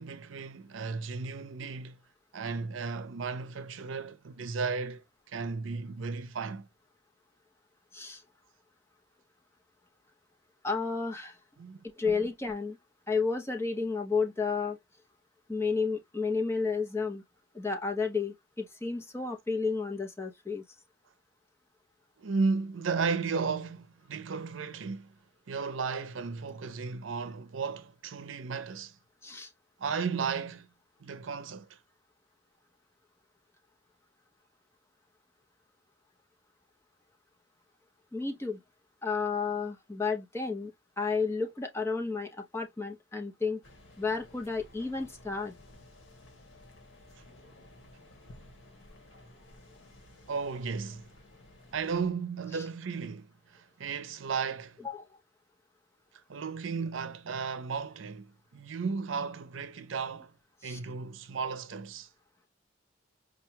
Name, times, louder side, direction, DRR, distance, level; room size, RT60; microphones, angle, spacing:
voice 1, 0.0-2.0 2.3-6.7 11.6-12.2 22.2-25.1 25.5-29.0 29.8-30.7 31.0-31.8 50.3-51.1 51.7-54.8 56.3-60.3 60.6-62.1, right 5 dB, 85° right, 0.5 m, -34 dB
voice 2, 10.6-11.4 11.8-12.8 13.1-14.8 15.5-17.2 17.5-20.6 29.2-29.5 38.1-38.6 39.0-43.6 44.0-45.5 52.5-52.6 54.8-55.0 60.6-60.8, left 4 dB, 15° left, 0.7 m, -32 dB
sound 1, 43.6-52.1, left 1 dB, 80° left, 1.3 m, -55 dB
5.0 x 2.3 x 2.8 m
head